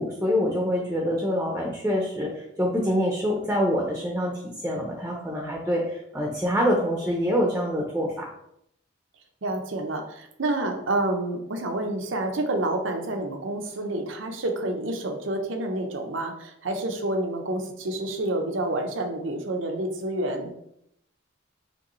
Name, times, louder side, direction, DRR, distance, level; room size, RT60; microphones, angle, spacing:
voice 1, 0.0-8.3, equal, 10° right, -1 dB, 0.6 m, -26 dB
voice 2, 9.4-20.5, right 1 dB, 80° right, 4 dB, 0.7 m, -28 dB
5.2 x 3.0 x 3.1 m, 0.76 s
head